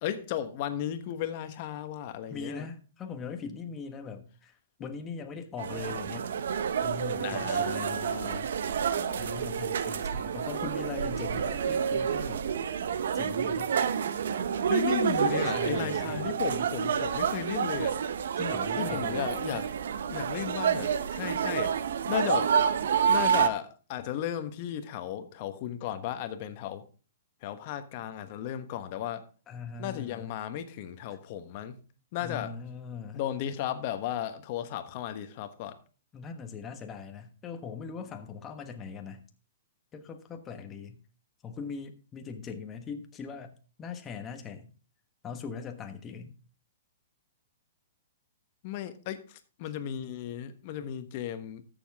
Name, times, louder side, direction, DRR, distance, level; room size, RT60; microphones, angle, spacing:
voice 1, 0.0-2.7 7.2-8.5 9.0-9.2 14.7-18.0 18.8-19.7 20.1-21.7 22.1-22.5 23.1-26.8 27.4-29.2 29.8-31.8 32.1-32.5 33.1-35.8 48.6-51.6, left 10 dB, 45° left, 1.2 m, -35 dB
voice 2, 2.3-4.5 4.8-6.3 6.8-8.0 9.1-12.4 13.1-13.7 15.5-16.3 18.4-19.3 29.5-30.3 32.2-33.2 36.1-39.2 39.9-41.0 41.4-43.5 43.8-44.7 45.2-46.3, left 5 dB, 20° left, 1.2 m, -40 dB
sound 1, 5.6-23.5, right 7 dB, 70° right, 0.8 m, -29 dB
13.5 x 7.1 x 3.5 m
hypercardioid pair, 140°, 0 cm